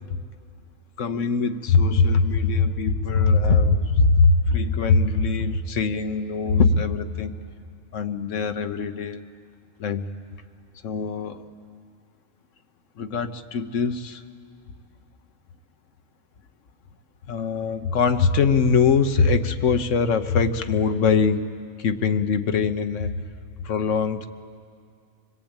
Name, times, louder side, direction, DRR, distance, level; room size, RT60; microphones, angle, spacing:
voice 1, 1.0-7.3 7.9-9.3 9.8-10.0 10.8-11.5 13.0-14.2 17.3-21.5 21.8-23.1 23.6-24.3, left 4 dB, 65° left, 8 dB, 1.3 m, -22 dB
25.0 x 20.5 x 8.9 m, 2.2 s
omnidirectional pair, 1.4 m